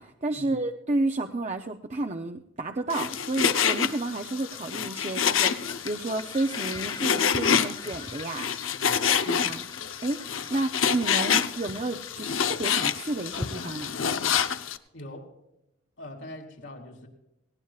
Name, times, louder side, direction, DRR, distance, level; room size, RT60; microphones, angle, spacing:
voice 1, 0.0-8.7 9.1-9.7 10.0-13.9, right 2 dB, 35° right, 5 dB, 0.6 m, -31 dB
Frying (food), 2.9-14.8, left 7 dB, 85° left, 0.8 m, -27 dB
sound 1, 5.3-14.6, left 3 dB, 20° left, 0.5 m, -43 dB
voice 2, 8.7-9.2 14.9-15.3 16.0-17.1, left 1 dB, 70° left, 1 dB, 2.9 m, -43 dB
18.5 x 18.0 x 2.4 m, 0.90 s
head